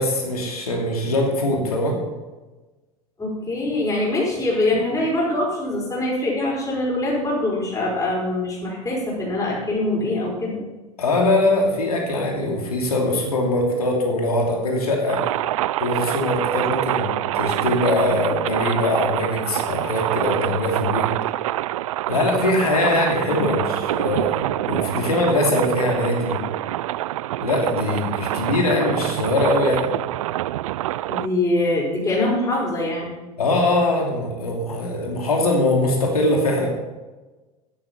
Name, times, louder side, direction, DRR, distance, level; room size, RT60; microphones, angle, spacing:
voice 1, 0.0-2.0 11.0-15.3 15.8-21.1 22.1-26.4 27.4-29.9 33.4-36.7, left 2 dB, 75° left, 0 dB, 2.8 m, -22 dB
voice 2, 3.2-10.6 23.2-23.5 31.1-33.1, left 2 dB, 20° left, -4 dB, 5.1 m, -23 dB
sound 1, 15.1-31.3, right 15 dB, 60° right, 0.4 m, -26 dB
13.5 x 11.0 x 4.2 m, 1.2 s
figure-of-eight pair, 80°, 19 cm